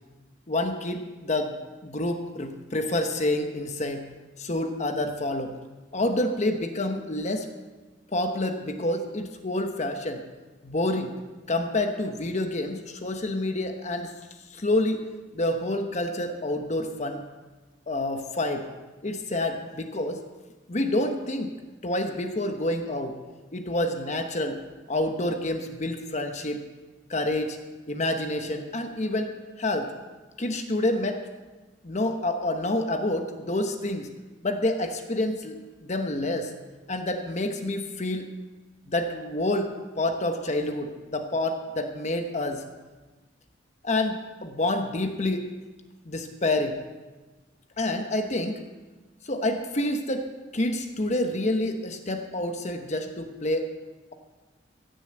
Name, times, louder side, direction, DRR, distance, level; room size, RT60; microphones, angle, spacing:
voice 1, 0.5-4.0 4.4-5.5 5.9-7.5 8.1-10.2 10.6-11.1 11.5-14.1 14.5-15.0 15.3-17.2 17.9-18.7 19.0-20.2 20.7-21.5 21.8-23.2 23.5-24.6 24.9-26.6 27.1-27.6 27.9-29.3 29.6-29.9 30.4-31.2 31.8-34.1 34.4-36.5 36.9-38.3 38.9-42.6 43.8-45.5 46.1-46.8 47.8-48.6 49.2-50.2 50.5-53.7, left 1 dB, 40° left, 6 dB, 1.0 m, -28 dB
16.0 x 6.9 x 7.8 m, 1.2 s
head